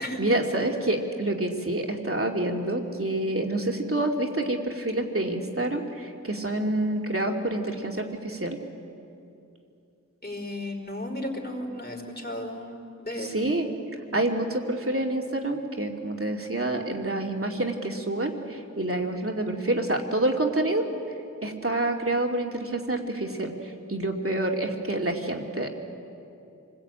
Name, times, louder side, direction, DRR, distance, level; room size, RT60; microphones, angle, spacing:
voice 1, 0.0-8.6 13.2-13.7 14.1-20.9 21.4-23.5 23.9-25.7, right 1 dB, 45° right, 2 dB, 2.7 m, -27 dB
voice 2, 10.2-13.4, left 1 dB, 30° left, 2 dB, 4.3 m, -34 dB
27.5 x 21.0 x 8.9 m, 2.6 s
wide cardioid pair, 50°, 31 cm